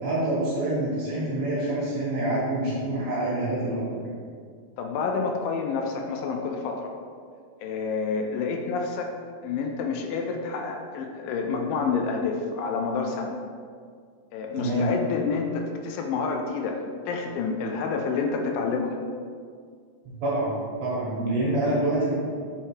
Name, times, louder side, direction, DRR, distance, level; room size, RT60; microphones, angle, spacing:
voice 1, 0.0-4.0 14.6-14.9 20.0-22.1, right 1 dB, 65° right, -6 dB, 2.0 m, -26 dB
voice 2, 4.8-7.0 7.6-9.2 9.4-13.3 14.3-19.0, left 4 dB, 80° left, 3 dB, 2.2 m, -28 dB
4.8 x 4.5 x 4.5 m, 2.1 s
omnidirectional pair, 4.1 m